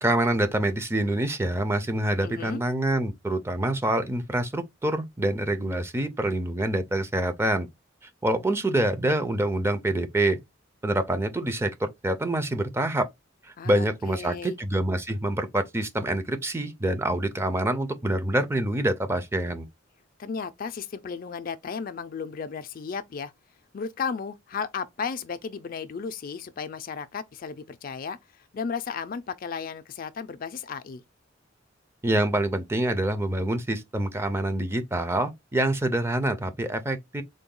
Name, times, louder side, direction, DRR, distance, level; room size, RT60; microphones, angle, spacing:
voice 1, 0.0-7.7 8.2-10.4 10.8-13.1 13.4-19.7 32.0-37.2, right 1 dB, 15° right, 0.5 m, -26 dB
voice 2, 2.2-2.6 13.6-14.5 20.2-23.3 23.7-28.2 28.5-31.0, left 5 dB, 45° left, 0.4 m, -34 dB
3.8 x 2.2 x 3.7 m
head